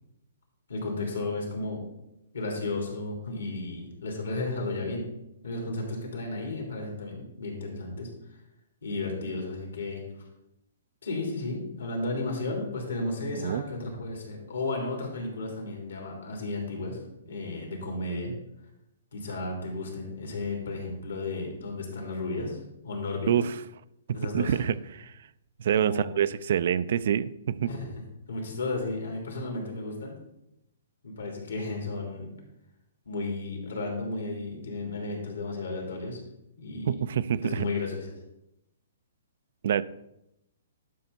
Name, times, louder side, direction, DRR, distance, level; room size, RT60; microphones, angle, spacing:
voice 1, 0.7-1.8 2.3-5.1 5.4-8.1 8.8-10.0 11.0-17.0 17.2-18.3 19.1-22.6 22.8-23.3 24.1-24.6 25.7-26.1 27.7-27.9 28.3-30.1 31.0-32.3 33.0-36.2 36.6-36.9 37.4-38.1, left 2 dB, 85° left, 0 dB, 3.3 m, -33 dB
voice 2, 13.3-13.7 23.3-23.6 24.1-25.2 25.6-27.7 36.9-37.7 39.6-39.8, right 9 dB, 60° right, 16 dB, 0.4 m, -27 dB
11.5 x 5.7 x 4.0 m, 0.86 s
hypercardioid pair, 135°, 0 cm